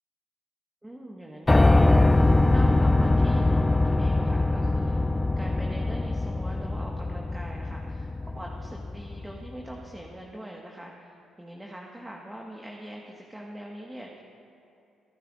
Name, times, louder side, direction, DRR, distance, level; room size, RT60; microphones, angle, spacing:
voice 1, 0.8-14.2, right 1 dB, 10° right, -1 dB, 1.4 m, -43 dB
Piano, 1.5-9.5, left 2 dB, 20° left, 0.3 m, -22 dB
24.0 x 10.5 x 2.5 m, 2.7 s
hypercardioid pair, 45°, 0 cm